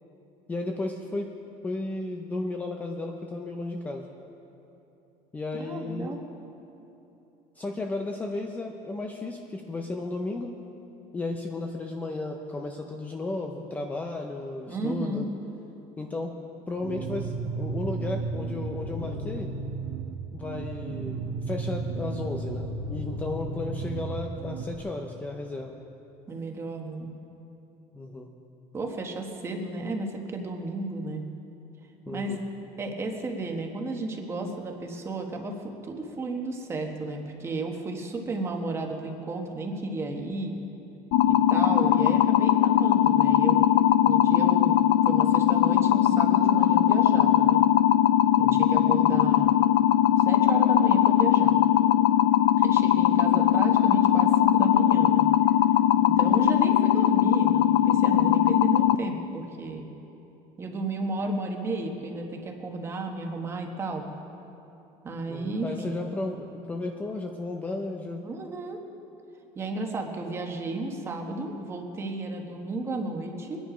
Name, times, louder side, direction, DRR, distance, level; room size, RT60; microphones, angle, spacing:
voice 1, 0.5-1.3 1.6-4.0 5.3-6.1 7.6-10.5 11.1-15.3 16.0-16.4 16.7-19.5 20.3-25.8 27.9-28.3 32.1-32.4 48.4-48.8 65.3-68.2, left 2 dB, 10° left, 3 dB, 0.6 m, -34 dB
voice 2, 5.5-6.2 14.7-15.3 26.3-27.1 28.7-31.2 32.1-32.4 32.8-40.5 41.2-43.6 44.0-44.8 45.1-47.6 48.4-49.5 50.2-51.6 52.6-55.2 56.0-59.9 60.6-64.0 65.0-66.0 68.2-68.8 69.5-73.6, right 2 dB, 20° right, 2 dB, 1.3 m, -33 dB
sound 1, 16.8-24.8, right 3 dB, 80° right, 1.1 m, -33 dB
sound 2, 41.1-58.9, left 12 dB, 60° left, 0.4 m, -20 dB
23.0 x 10.5 x 5.1 m, 2.9 s
cardioid pair, 175°, 13 cm